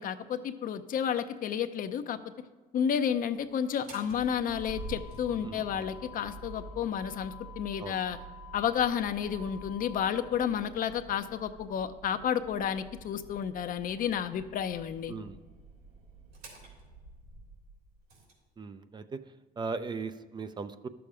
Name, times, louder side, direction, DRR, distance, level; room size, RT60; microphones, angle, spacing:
voice 1, 0.0-2.2 2.7-8.2 8.5-15.1, left 8 dB, 55° left, 10 dB, 0.6 m, -31 dB
Motor vehicle (road), 3.6-18.3, right 1 dB, 70° right, 3.4 m, -48 dB
voice 2, 5.4-5.9 7.8-8.0 15.1-15.4 18.6-19.2 19.6-20.9, right 4 dB, 25° right, 11 dB, 0.5 m, -38 dB
11.5 x 7.0 x 4.9 m, 1.3 s
cardioid pair, 110°, 17 cm